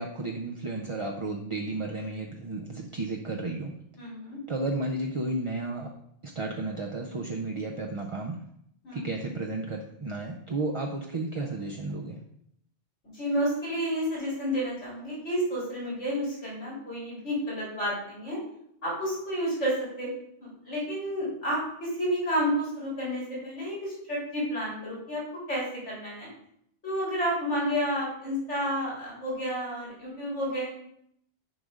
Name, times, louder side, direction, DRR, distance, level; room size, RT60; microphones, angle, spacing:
voice 1, 0.0-3.7 4.5-5.9 6.2-8.4 8.9-12.2, right 2 dB, 35° right, 1 dB, 0.5 m, -33 dB
voice 2, 4.0-4.4 8.8-9.2 13.1-18.4 18.8-20.1 20.4-25.2 25.5-26.3 26.8-30.7, equal, 90° left, -7 dB, 3.7 m, -30 dB
8.0 x 5.2 x 3.6 m, 0.72 s
omnidirectional pair, 1.2 m